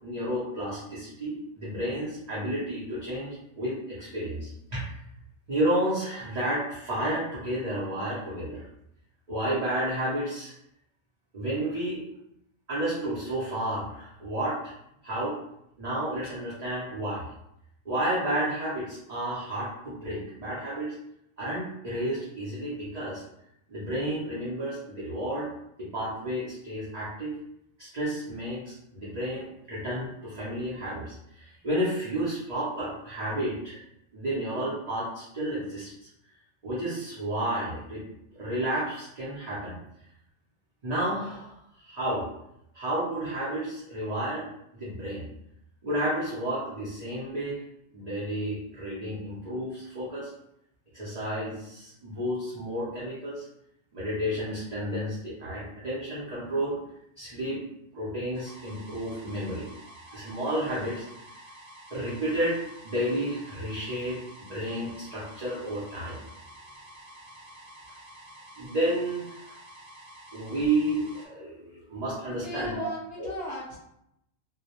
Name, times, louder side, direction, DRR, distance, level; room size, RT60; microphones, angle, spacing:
voice 1, 0.0-4.9 5.5-8.6 9.3-10.5 11.3-12.0 12.7-14.7 15.0-15.4 15.8-17.2 17.8-20.9 21.4-23.2 23.7-25.5 25.8-27.4 27.8-33.8 34.1-35.9 36.6-38.0 38.3-39.8 40.8-42.3 42.7-45.3 45.8-47.6 47.9-50.3 50.9-53.4 53.9-56.8 57.2-57.6 57.9-59.7 60.1-61.4 61.9-62.6 62.8-64.2 64.5-66.2 68.6-69.4 70.3-72.9, right 1 dB, 45° right, -9 dB, 0.6 m, -31 dB
sound 1, 58.3-71.3, right 1 dB, 65° right, 0.9 m, -49 dB
voice 2, 72.3-73.8, left 2 dB, 65° left, -6 dB, 0.7 m, -36 dB
2.2 x 2.0 x 2.8 m, 0.79 s
omnidirectional pair, 1.2 m